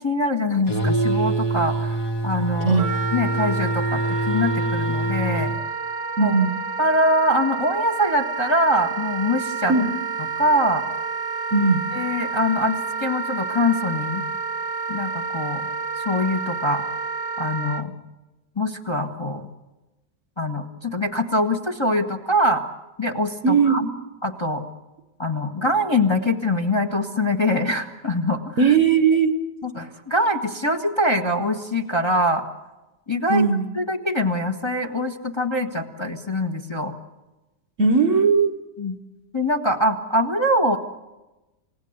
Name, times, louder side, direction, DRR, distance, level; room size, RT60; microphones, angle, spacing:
voice 1, 0.0-2.8 3.1-5.5 6.2-6.3 6.8-9.7 10.4-10.8 11.9-14.2 14.9-15.6 16.0-16.8 17.4-17.9 18.6-19.5 20.4-22.6 23.0-23.8 24.2-24.6 25.2-28.7 29.6-32.5 33.1-33.4 33.7-36.9 38.8-39.0 39.3-40.8, left 1 dB, 20° left, 2 dB, 1.2 m, -23 dB
sound 1, 0.7-5.6, right 2 dB, 65° left, 2.9 m, -25 dB
Wind instrument woodwind instrument, 2.8-17.8, right 5 dB, 80° right, 1.8 m, -29 dB
voice 2, 6.2-6.5 9.7-9.9 11.5-11.8 23.4-23.9 28.6-29.4 33.3-33.7 37.8-38.6, right 5 dB, 50° right, 9 dB, 1.4 m, -18 dB
29.0 x 17.5 x 8.0 m, 1.0 s
omnidirectional pair, 1.9 m